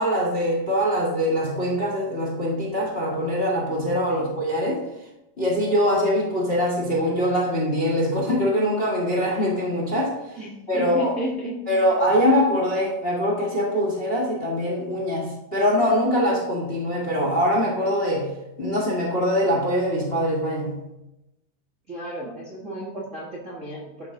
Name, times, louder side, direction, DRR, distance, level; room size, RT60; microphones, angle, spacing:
voice 1, 0.0-4.8 5.4-10.4 10.7-11.1 11.7-20.8, equal, 75° left, -4 dB, 0.5 m, -23 dB
voice 2, 10.4-11.8 21.9-24.1, right 1 dB, 65° right, -4 dB, 0.7 m, -33 dB
13.5 x 4.8 x 3.8 m, 0.91 s
omnidirectional pair, 4.3 m